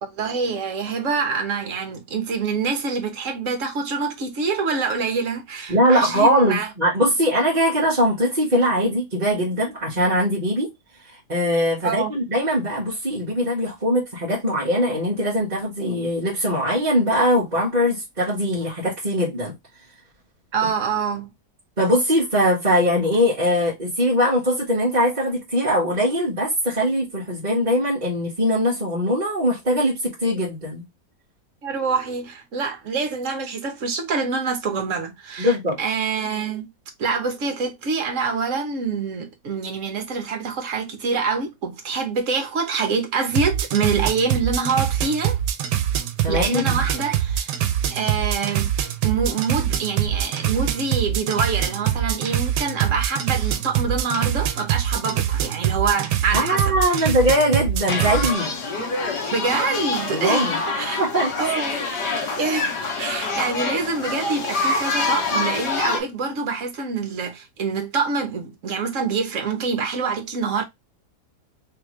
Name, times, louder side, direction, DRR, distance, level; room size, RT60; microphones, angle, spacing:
voice 1, 0.0-6.7 11.8-12.1 20.5-21.3 31.6-36.7 37.0-45.4 46.3-47.5 47.9-48.7 49.0-57.1 59.3-60.5 60.8-61.0 61.4-61.8 62.2-70.6, right 5 dB, 55° right, 1.2 m, -26 dB
voice 2, 5.7-10.7 11.3-19.5 21.8-30.8 35.4-35.8 46.2-46.9 56.3-58.5 60.1-60.6 61.0-61.3, equal, 25° right, 1.5 m, -21 dB
sound 1, 43.3-58.3, right 10 dB, 80° right, 1.3 m, -24 dB
sound 2, 57.9-66.0, left 3 dB, 80° left, 1.5 m, -26 dB
3.6 x 3.3 x 3.0 m
omnidirectional pair, 1.8 m